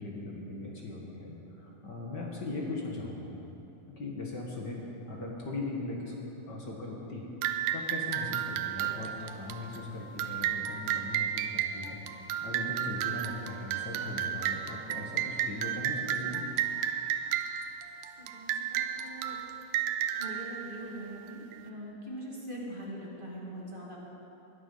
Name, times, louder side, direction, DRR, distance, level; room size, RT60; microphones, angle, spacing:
voice 1, 0.0-3.3 3.9-6.2 6.4-16.4, left 2 dB, 45° left, -2 dB, 1.5 m, -39 dB
sound 1, 7.4-21.6, right 10 dB, 85° right, 2.4 m, -33 dB
voice 2, 18.2-19.4 20.2-24.0, right 1 dB, 20° right, -4 dB, 1.7 m, -42 dB
20.5 x 11.0 x 5.5 m, 3.0 s
omnidirectional pair, 4.2 m